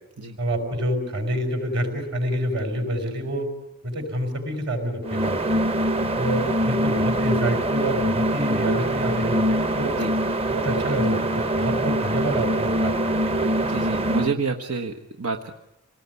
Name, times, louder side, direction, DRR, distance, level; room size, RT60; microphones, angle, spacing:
voice 1, 0.4-3.5 3.8-5.6 6.1-10.0 10.5-12.9 13.2-13.5, right 1 dB, 50° right, 6 dB, 5.9 m, -27 dB
sound 1, 5.0-14.3, right 1 dB, 25° right, 0.9 m, -24 dB
voice 2, 13.6-15.5, right 4 dB, 90° right, 5 dB, 1.4 m, -29 dB
27.5 x 19.0 x 9.7 m, 0.91 s
head